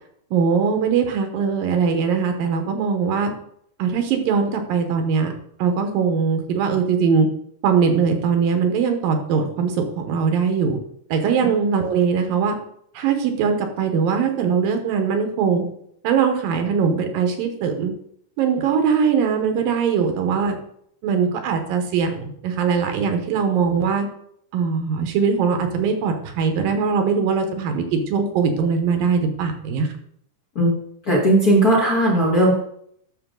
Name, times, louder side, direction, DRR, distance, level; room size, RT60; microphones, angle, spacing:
voice 1, 0.3-3.3 3.8-5.3 5.6-7.3 7.6-10.8 11.1-12.6 12.9-15.6 16.0-17.9 18.4-20.5 21.0-24.1 24.5-29.9, right 6 dB, 80° right, 5 dB, 2.9 m, -21 dB
voice 2, 31.0-32.5, right 1 dB, 35° left, -4 dB, 1.6 m, -17 dB
12.0 x 6.3 x 3.9 m, 0.69 s
omnidirectional pair, 4.0 m